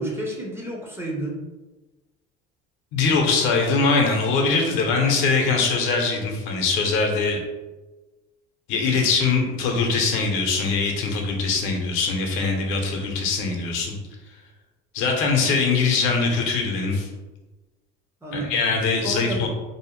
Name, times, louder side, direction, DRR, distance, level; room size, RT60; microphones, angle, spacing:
voice 1, 0.0-1.4 18.2-18.6 19.0-19.5, right 1 dB, 10° right, -2 dB, 0.5 m, -30 dB
voice 2, 2.9-7.4 8.7-13.9 14.9-17.1 18.3-19.5, left 4 dB, 70° left, 1 dB, 0.7 m, -22 dB
2.6 x 2.0 x 3.0 m, 1.1 s
cardioid pair, 120°, 21 cm